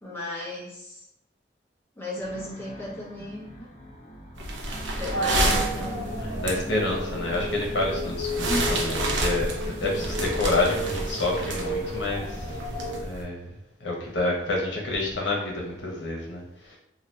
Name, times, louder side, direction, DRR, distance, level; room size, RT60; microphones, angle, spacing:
voice 1, 0.0-1.0 2.0-3.7 5.0-6.2 7.2-7.4 8.5-8.9, left 1 dB, 15° left, -6 dB, 1.0 m, -35 dB
sound 1, 2.2-12.3, equal, 40° left, 0.6 m, -44 dB
sound 2, 4.4-13.2, right 2 dB, 85° right, 0.6 m, -30 dB
sound 3, 5.1-13.0, left 1 dB, 55° right, 0.9 m, -32 dB
voice 2, 6.2-9.5 9.8-12.6 13.0-13.5 13.8-16.8, left 2 dB, 80° left, -1 dB, 0.9 m, -28 dB
2.8 x 2.4 x 3.3 m, 0.80 s
head